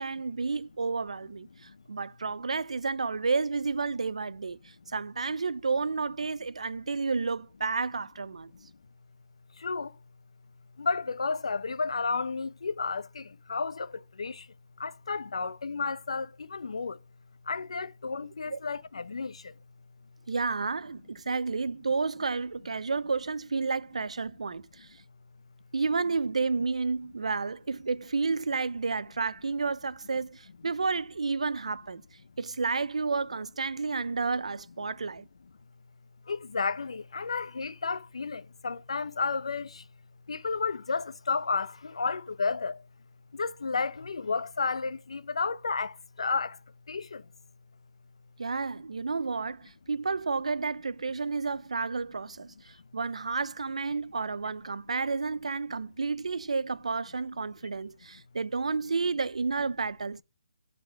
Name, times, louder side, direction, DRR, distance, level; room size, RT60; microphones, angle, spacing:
voice 1, 0.0-1.5 1.9-8.5 18.5-18.6 20.3-24.9 25.7-32.0 32.4-35.3 48.4-60.2, right 4 dB, 85° right, 0.5 m, -31 dB
voice 2, 9.6-10.0 10.8-14.5 14.8-17.0 17.4-19.5 36.3-39.9 40.3-42.8 43.3-46.6 46.9-47.3, left 4 dB, 60° left, 0.7 m, -32 dB
11.5 x 4.2 x 5.4 m
hypercardioid pair, 175°, 3 cm